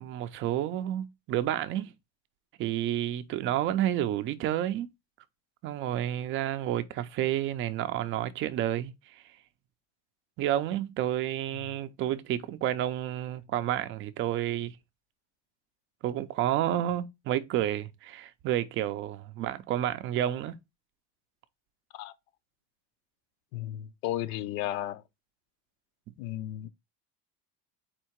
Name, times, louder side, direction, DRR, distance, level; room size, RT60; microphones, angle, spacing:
voice 1, 0.0-1.9 2.6-4.9 5.6-9.2 10.4-14.7 16.0-20.6, right 12 dB, 40° right, 0.4 m, -30 dB
voice 2, 23.5-25.0 26.2-26.7, left 13 dB, 70° left, 0.5 m, -34 dB
4.4 x 2.8 x 4.4 m
cardioid pair, 160°, 33 cm